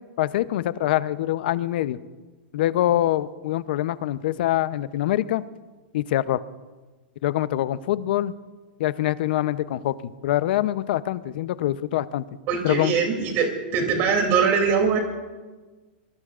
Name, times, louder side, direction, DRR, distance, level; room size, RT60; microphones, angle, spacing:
voice 1, 0.2-2.0 2.5-5.4 5.9-6.4 7.2-8.3 8.8-12.2 12.6-13.0, left 13 dB, 60° left, 15 dB, 0.7 m, -24 dB
voice 2, 12.5-15.0, right 5 dB, 40° right, 3 dB, 2.9 m, -22 dB
24.5 x 21.5 x 2.5 m, 1.3 s
hypercardioid pair, 140°, 6 cm